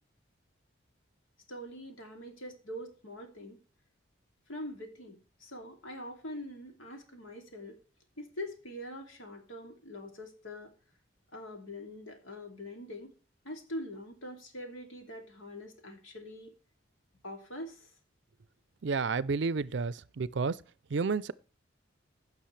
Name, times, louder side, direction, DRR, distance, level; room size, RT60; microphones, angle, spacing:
voice 1, 1.5-3.6 4.5-7.8 8.2-10.7 11.3-13.1 13.4-16.5 17.2-17.9, left 1 dB, 80° left, 2.7 m, -43 dB
voice 2, 18.8-20.6 20.9-21.3, right 4 dB, 65° right, 0.5 m, -31 dB
16.0 x 6.1 x 3.2 m
head